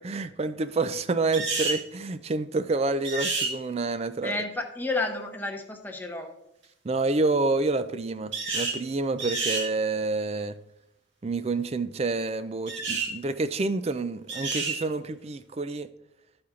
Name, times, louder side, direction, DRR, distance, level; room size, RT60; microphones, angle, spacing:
voice 1, 0.0-4.4 6.8-10.6 11.2-15.9, right 3 dB, 35° right, 0.4 m, -28 dB
sound 1, 1.3-1.8 3.0-3.5 8.3-8.8 9.2-9.7 12.7-13.1 14.3-14.8, right 3 dB, 80° right, 2.2 m, -29 dB
voice 2, 4.2-6.3, left 2 dB, 10° left, 0.8 m, -31 dB
13.0 x 4.4 x 3.7 m
head